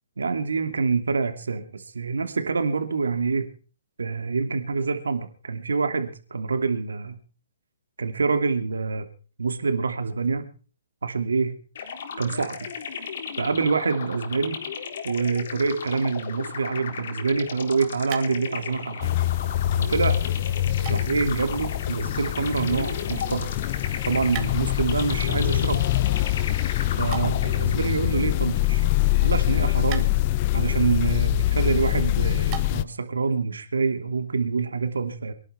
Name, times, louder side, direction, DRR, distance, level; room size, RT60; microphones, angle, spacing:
voice 1, 0.2-3.5 4.0-7.2 8.0-9.1 9.4-10.4 11.0-11.5 12.2-12.7 13.4-14.6 15.0-19.1 19.8-20.2 20.9-23.5 24.0-25.9 27.0-28.9 29.2-30.1 30.5-35.3, right 4 dB, 80° right, 8 dB, 2.7 m, -26 dB
sound 1, 11.7-28.1, left 6 dB, 60° left, 3.8 m, -35 dB
sound 2, 17.4-33.0, right 13 dB, 30° right, 2.7 m, -45 dB
sound 3, 19.0-32.8, left 15 dB, 40° left, 0.7 m, -24 dB
24.5 x 11.5 x 4.5 m, 0.39 s
hypercardioid pair, 135°, 0 cm